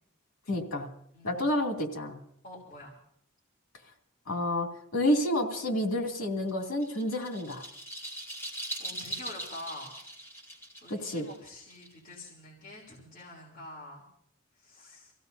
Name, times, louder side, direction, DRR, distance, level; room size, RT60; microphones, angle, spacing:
voice 1, 0.5-0.9 1.2-2.2 4.3-7.7 10.9-11.3, left 1 dB, 85° left, 1 dB, 2.6 m, -29 dB
voice 2, 2.4-3.0 8.8-9.9 10.8-14.0 14.6-15.1, left 1 dB, 40° left, -6 dB, 3.0 m, -46 dB
sound 1, 6.5-12.3, right 1 dB, 10° left, 2.3 m, -41 dB
26.5 x 16.0 x 2.7 m, 0.70 s
head